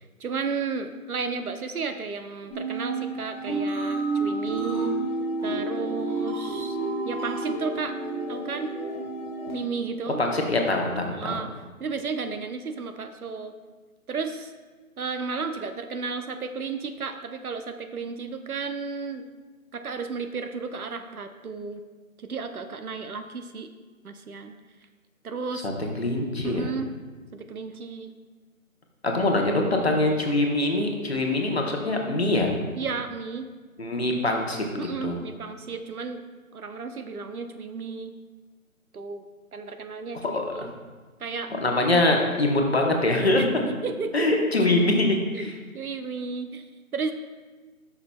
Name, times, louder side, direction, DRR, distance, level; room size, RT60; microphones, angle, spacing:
voice 1, 0.0-4.9 5.4-6.8 7.0-8.0 8.3-8.7 9.5-10.2 11.2-11.5 11.8-13.5 14.1-14.5 15.0-19.2 19.7-21.8 22.2-23.7 24.0-24.5 25.2-25.7 26.4-26.9 27.3-28.1 32.8-33.5 34.8-36.2 36.5-38.2 38.9-39.2 39.5-40.7 41.2-41.5 43.3-43.4 43.8-44.3 45.3-45.5 45.7-47.1, right 4 dB, 85° right, 8 dB, 0.8 m, -33 dB
sound 1, 2.5-9.5, right 2 dB, 30° right, 1.8 m, -30 dB
voice 2, 10.2-11.3 26.0-26.7 29.0-32.5 33.8-35.1 40.2-40.7 41.5-43.4 44.1-45.5, left 2 dB, 45° left, 1 dB, 0.9 m, -24 dB
10.5 x 5.8 x 2.2 m, 1.3 s
figure-of-eight pair, 175°, 43 cm